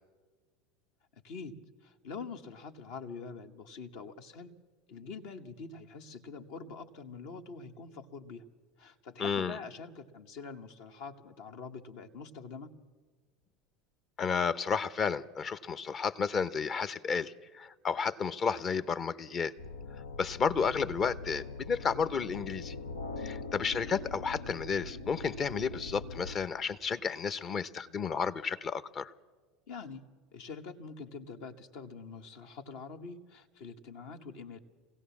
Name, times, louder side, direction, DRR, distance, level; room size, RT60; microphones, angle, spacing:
voice 1, 1.2-1.5 1.8-4.5 4.9-8.4 8.8-12.7 23.1-23.5 29.7-30.0 30.3-34.6, left 5 dB, 65° left, 5 dB, 1.4 m, -45 dB
voice 2, 9.2-9.6 14.2-19.5 20.2-22.7 23.2-29.1, left 6 dB, 35° left, 14 dB, 0.9 m, -32 dB
sound 1, 19.6-26.4, left 3 dB, 85° left, 0.7 m, -42 dB
23.5 x 16.5 x 7.2 m, 1.5 s
hypercardioid pair, 75°, 0 cm